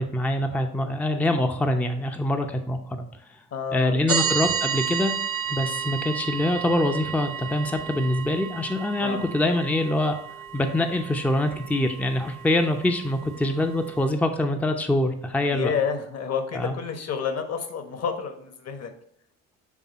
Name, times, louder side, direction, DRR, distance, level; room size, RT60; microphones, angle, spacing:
voice 1, 0.0-3.0 3.7-5.1 5.5-10.2 10.5-15.7 16.5-16.7, left 1 dB, 5° left, 6 dB, 0.6 m, -24 dB
voice 2, 3.5-4.2 9.0-9.3 15.5-18.9, left 6 dB, 35° left, 7 dB, 1.1 m, -29 dB
sound 1, 4.1-14.1, right 8 dB, 80° right, 0.7 m, -32 dB
7.4 x 3.6 x 4.1 m, 0.72 s
figure-of-eight pair, 55°, 42 cm